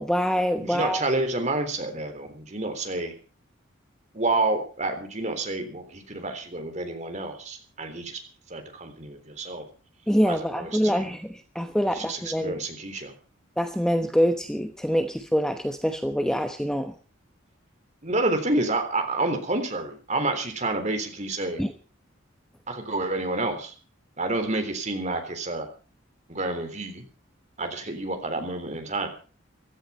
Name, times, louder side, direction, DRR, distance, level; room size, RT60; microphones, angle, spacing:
voice 1, 0.0-1.0 10.1-12.6 13.6-16.9 21.6-21.7, equal, 5° left, 7 dB, 1.0 m, -25 dB
voice 2, 0.6-3.1 4.1-8.2 8.5-9.7 10.3-11.1 11.8-13.1 18.0-21.6 22.7-23.7 24.2-25.7 26.3-27.0 27.6-29.1, right 2 dB, 35° right, 6 dB, 3.6 m, -29 dB
16.0 x 13.5 x 5.6 m, 0.38 s
head